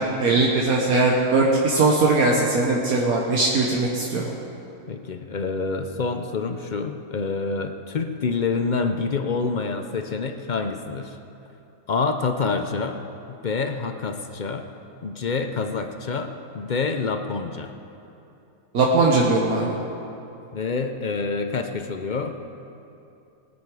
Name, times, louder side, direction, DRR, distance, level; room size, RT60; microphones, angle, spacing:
voice 1, 0.0-4.2 18.7-19.7, right 3 dB, 75° right, -2 dB, 1.6 m, -20 dB
voice 2, 4.9-11.2 11.9-14.7 15.0-17.7 20.5-22.5, left 4 dB, 50° left, 7 dB, 0.5 m, -27 dB
19.5 x 9.8 x 4.8 m, 2.8 s
omnidirectional pair, 1.5 m